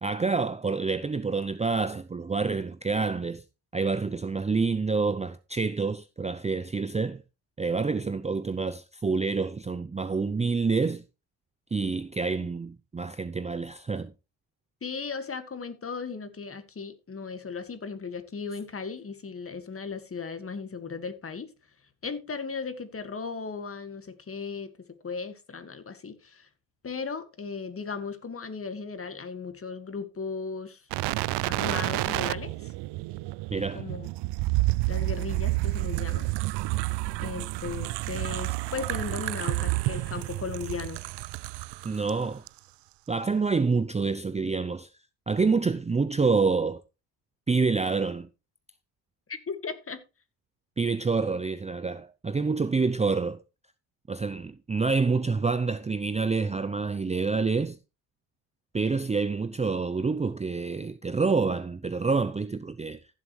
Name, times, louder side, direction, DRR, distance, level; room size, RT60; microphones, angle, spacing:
voice 1, 0.0-3.4 3.7-7.2 7.6-11.0 11.7-14.1 33.5-33.9 41.8-42.4 43.1-44.9 45.3-46.8 47.5-48.3 50.8-53.4 54.1-57.8 58.7-63.0, right 4 dB, 15° right, 0.6 m, -27 dB
voice 2, 14.8-21.5 22.0-24.7 25.0-26.5 26.8-30.9 31.5-32.7 33.7-34.1 34.9-36.3 37.2-41.0 49.3-50.0, left 5 dB, 30° left, 2.1 m, -36 dB
sound 1, 30.9-42.1 42.5-42.6, right 21 dB, 65° right, 0.5 m, -30 dB
15.0 x 7.4 x 3.2 m
supercardioid pair, 85°, 45 cm